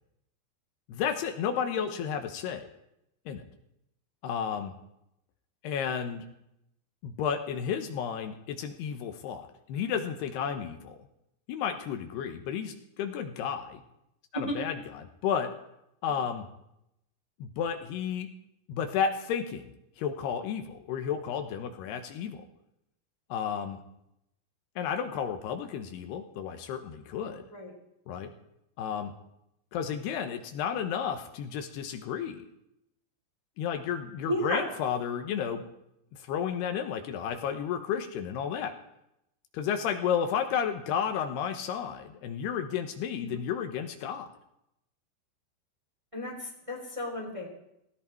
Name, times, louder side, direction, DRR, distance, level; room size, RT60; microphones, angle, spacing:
voice 1, 0.9-2.7 3.3-3.4 4.2-4.7 5.6-6.2 7.0-11.0 11.5-13.8 14.3-14.8 15.2-15.5 16.0-16.5 17.4-18.3 18.7-22.4 23.3-23.8 24.8-27.4 28.1-28.3 28.8-29.1 29.7-32.4 33.6-35.6 36.2-38.7 39.5-44.3, left 8 dB, 75° left, 6 dB, 3.1 m, -32 dB
voice 2, 34.3-34.7 43.2-43.4 46.1-47.5, equal, 10° right, -1 dB, 2.8 m, -33 dB
17.0 x 16.5 x 4.5 m, 0.80 s
omnidirectional pair, 4.8 m